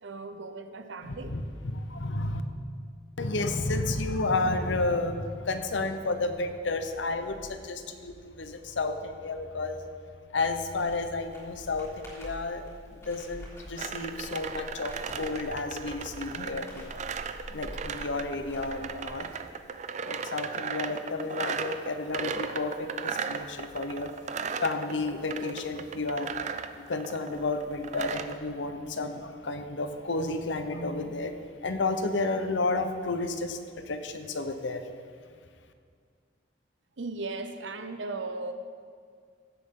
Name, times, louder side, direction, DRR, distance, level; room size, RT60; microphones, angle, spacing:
voice 1, 0.0-1.3 37.0-38.5, right 3 dB, 85° right, 8 dB, 0.8 m, -37 dB
voice 2, 1.2-2.4 3.2-9.9 10.3-12.6 12.9-16.9 17.5-19.3 20.1-24.1 24.6-26.3 26.9-31.3 31.6-33.6 33.9-34.8, left 3 dB, 85° left, 8 dB, 0.8 m, -31 dB
Crackle, 10.7-19.3, equal, 15° left, 3.4 m, -47 dB
sound 1, 13.8-28.4, right 6 dB, 40° right, 0.4 m, -36 dB
16.0 x 8.1 x 3.8 m, 2.1 s
head